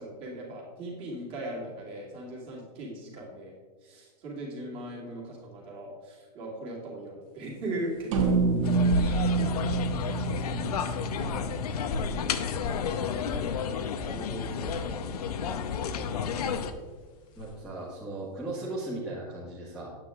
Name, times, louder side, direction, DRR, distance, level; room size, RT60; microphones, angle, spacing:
voice 1, 0.0-3.5 3.8-8.7 9.0-9.7 10.0-10.4 12.8-13.1 14.0-14.7 17.7-17.9, right 1 dB, 25° right, -3 dB, 2.7 m, -39 dB
sound 1, 7.6-17.7, left 1 dB, 25° left, 1.0 m, -39 dB
sound 2, 8.1-12.6, right 4 dB, 50° right, 1.4 m, -28 dB
sound 3, 8.6-16.7, left 7 dB, 70° left, 0.9 m, -32 dB
voice 2, 11.3-11.9 17.4-19.9, right 2 dB, 5° right, -11 dB, 1.7 m, -38 dB
9.4 x 9.2 x 3.6 m, 1.5 s
supercardioid pair, 165°, 21 cm